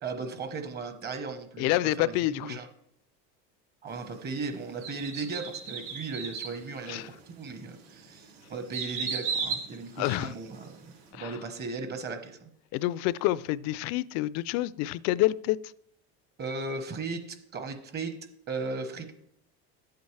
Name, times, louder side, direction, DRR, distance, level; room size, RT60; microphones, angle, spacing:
voice 1, 0.0-2.7 3.8-12.5 16.4-18.2 18.5-19.1, right 4 dB, 30° right, 1.2 m, -37 dB
voice 2, 1.6-2.6 6.9-7.1 10.0-10.3 11.1-11.4 12.7-15.6, left 16 dB, 55° left, 0.4 m, -28 dB
sound 1, 4.8-6.6 7.2-7.3 7.9-10.7 11.0-11.1, right 5 dB, 70° right, 4.3 m, -35 dB
11.5 x 8.1 x 3.3 m
supercardioid pair, 135°, 31 cm